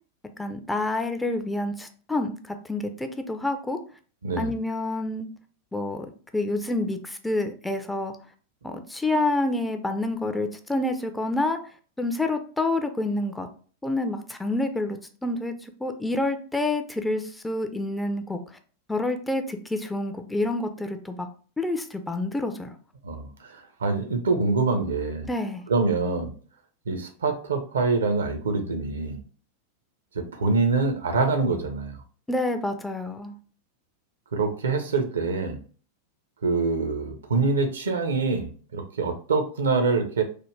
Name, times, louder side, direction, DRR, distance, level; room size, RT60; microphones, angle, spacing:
voice 1, 0.4-3.8 4.4-5.3 5.7-6.1 6.3-8.1 8.6-11.6 12.0-13.5 13.8-18.4 18.9-21.3 21.6-22.8 25.2-25.6 32.3-33.3, left 2 dB, 5° left, 7 dB, 0.3 m, -28 dB
voice 2, 4.2-4.5 23.0-25.3 25.7-26.3 26.9-29.2 30.1-32.0 34.3-35.6 36.4-40.2, right 4 dB, 70° right, 6 dB, 0.5 m, -25 dB
3.2 x 2.1 x 3.1 m, 0.41 s
figure-of-eight pair, 90°, 0 cm